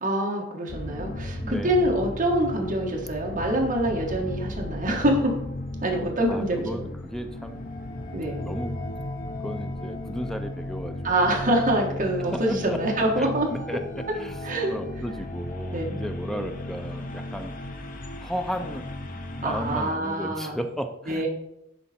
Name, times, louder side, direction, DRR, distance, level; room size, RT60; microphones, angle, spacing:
voice 1, 0.0-5.3 5.8-6.9 8.1-8.4 11.0-13.5 14.4-14.8 15.7-15.8 16.3-16.5 19.4-20.6 21.1-21.3, right 1 dB, 40° right, 0 dB, 1.5 m, -25 dB
sound 1, 0.7-19.9, left 1 dB, 45° left, 0.8 m, -35 dB
voice 2, 1.4-1.9 6.3-7.6 8.4-8.9 9.4-11.3 12.2-12.8 13.2-14.4 14.7-17.5 18.2-18.9 19.4-21.3, equal, ahead, 7 dB, 0.4 m, -34 dB
11.0 x 4.0 x 4.3 m, 0.83 s
head